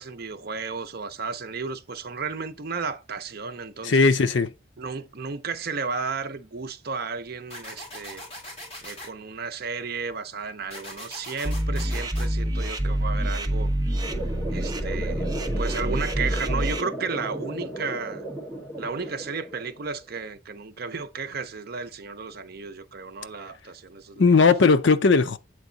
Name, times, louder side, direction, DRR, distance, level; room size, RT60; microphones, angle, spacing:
voice 1, 0.0-4.2 4.8-8.2 8.8-13.7 14.5-18.2 18.8-24.4, right 5 dB, 50° right, 0.6 m, -33 dB
voice 2, 3.8-4.5 24.2-25.4, left 4 dB, 60° left, 0.5 m, -18 dB
sound 1, 7.5-9.1 10.7-12.3, left 1 dB, 30° left, 2.1 m, -40 dB
sound 2, 11.4-16.8, right 1 dB, 20° right, 0.8 m, -27 dB
sound 3, 14.0-20.0, right 1 dB, 5° left, 2.2 m, -35 dB
8.0 x 3.6 x 3.9 m
head